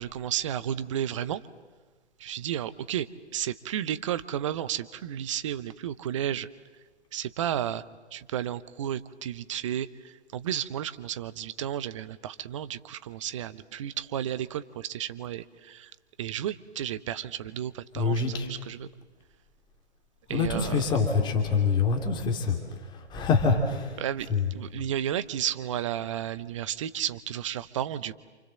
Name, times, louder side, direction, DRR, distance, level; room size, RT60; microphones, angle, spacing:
voice 1, 0.0-1.4 2.2-3.1 3.3-6.5 7.1-7.8 8.1-9.9 10.3-15.9 16.2-18.9 20.3-20.8 24.0-28.1, right 10 dB, 25° right, 15 dB, 0.9 m, -32 dB
voice 2, 17.9-18.5 20.3-24.0 24.3-24.5, left 4 dB, 15° left, 2 dB, 2.9 m, -26 dB
28.5 x 27.5 x 7.6 m, 1.4 s
figure-of-eight pair, 135°, 34 cm